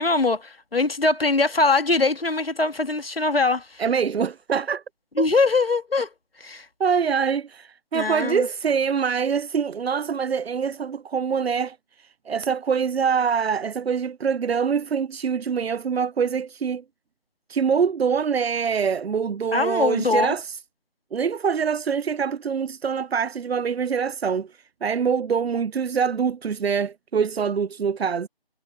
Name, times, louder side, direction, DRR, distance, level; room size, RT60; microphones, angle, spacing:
voice 1, 0.0-3.8 5.2-6.1 6.4-6.7 7.9-8.5 19.5-20.4, left 3 dB, 70° left, 1.7 m, -22 dB
voice 2, 3.8-4.8 5.2-5.3 6.8-16.8 17.5-20.6 21.1-24.5 24.8-28.3, right 6 dB, 85° right, 0.5 m, -24 dB
figure-of-eight pair, 160°, 30 cm